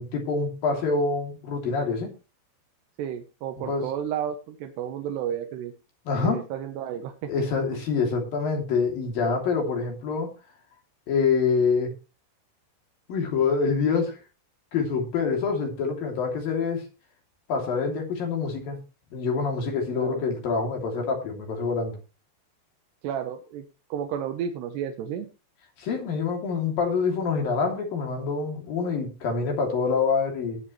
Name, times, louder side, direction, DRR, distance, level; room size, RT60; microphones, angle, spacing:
voice 1, 0.0-2.1 3.6-3.9 6.1-6.4 7.3-10.3 11.1-11.9 13.1-14.2 14.7-16.8 17.5-18.8 19.1-22.0 25.8-30.6, left 5 dB, 55° left, 2 dB, 4.5 m, -26 dB
voice 2, 3.0-5.7 6.2-7.3 19.9-20.2 23.0-23.6 23.9-25.3, right 9 dB, 75° right, 5 dB, 3.0 m, -32 dB
20.0 x 7.5 x 3.2 m, 0.30 s
omnidirectional pair, 5.1 m